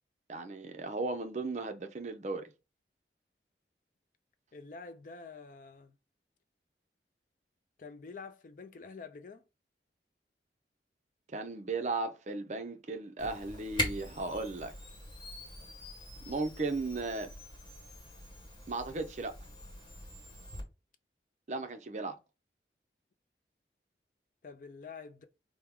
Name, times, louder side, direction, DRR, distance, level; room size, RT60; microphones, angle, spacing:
voice 1, 0.3-2.5 11.3-14.7 16.3-17.3 18.7-19.3 21.5-22.2, right 3 dB, 40° right, 0.5 m, -36 dB
voice 2, 4.5-6.0 7.8-9.4 24.4-25.2, left 4 dB, 50° left, 0.4 m, -47 dB
Camera, 13.2-20.6, left 1 dB, 30° left, 1.3 m, -42 dB
4.5 x 2.1 x 3.5 m
head